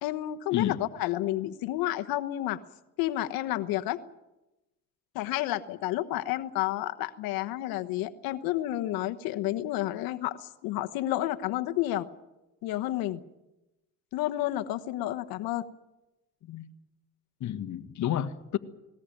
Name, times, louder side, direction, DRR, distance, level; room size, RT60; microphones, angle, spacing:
voice 1, 0.0-2.6 3.0-4.0 5.1-12.1 12.6-13.2 14.1-15.7, left 15 dB, 80° left, 1.2 m, -30 dB
voice 2, 0.5-0.8 16.4-16.7 17.4-18.6, left 11 dB, 55° left, 1.6 m, -30 dB
20.0 x 19.0 x 9.1 m
cardioid pair, 105°, 35 cm